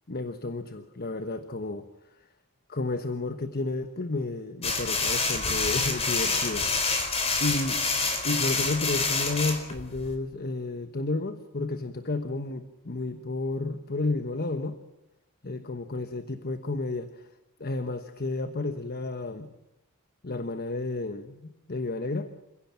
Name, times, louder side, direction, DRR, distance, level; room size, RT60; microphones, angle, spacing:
voice 1, 0.1-1.9 2.7-7.1 7.4-7.8 8.2-14.8 15.4-17.3 17.6-19.5 20.2-21.4 21.7-22.3, left 2 dB, 45° left, 9 dB, 1.2 m, -31 dB
sound 1, 4.6-10.2, left 3 dB, 30° left, 4.1 m, -27 dB
28.5 x 16.5 x 7.4 m, 0.92 s
head